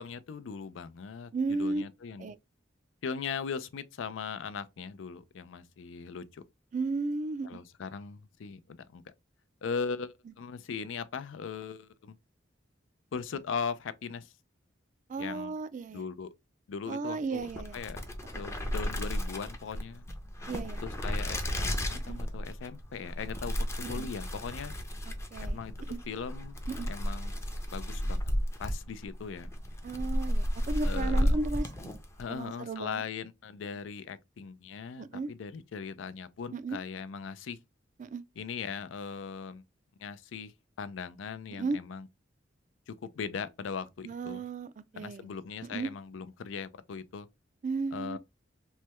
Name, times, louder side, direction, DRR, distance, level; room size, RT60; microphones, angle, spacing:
voice 1, 0.0-2.3 3.0-6.4 7.4-9.0 9.6-12.2 13.1-14.3 15.2-15.5 15.9-16.3 16.7-17.5 17.7-18.1 18.4-20.1 20.8-24.7 25.4-25.7 26.1-26.6 26.9-27.4 27.7-28.2 28.6-29.5 30.8-31.4 32.2-37.6 38.4-39.6 40.0-40.5 40.8-42.1 42.9-44.4 45.0-47.3 47.9-48.2, left 5 dB, 85° left, 0.4 m, -39 dB
voice 2, 1.3-1.8 2.2-2.4 6.7-7.6 15.1-16.0 16.9-17.8 20.5-20.8 22.0-22.2 23.8-24.1 25.1-25.6 25.9-26.0 26.7-26.9 29.8-32.0 32.3-33.0 35.0-35.3 36.5-36.8 38.0-38.2 41.5-41.8 44.0-45.3 45.6-45.9 47.6-48.2, right 3 dB, 40° right, 0.3 m, -34 dB
sound 1, 17.4-32.3, equal, 15° left, 0.5 m, -33 dB
3.2 x 2.2 x 2.9 m
head